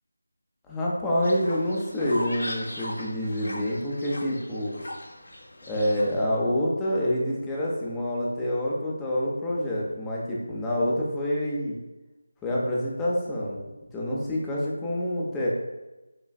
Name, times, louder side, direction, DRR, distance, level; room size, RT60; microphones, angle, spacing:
voice 1, 0.7-4.8 5.7-11.8 12.4-13.6 13.9-15.5, left 1 dB, 5° left, -5 dB, 0.5 m, -27 dB
Fowl, 1.2-6.2, left 1 dB, 50° left, 0.6 m, -39 dB
4.6 x 3.1 x 2.3 m, 1.1 s
figure-of-eight pair, 160°, 0 cm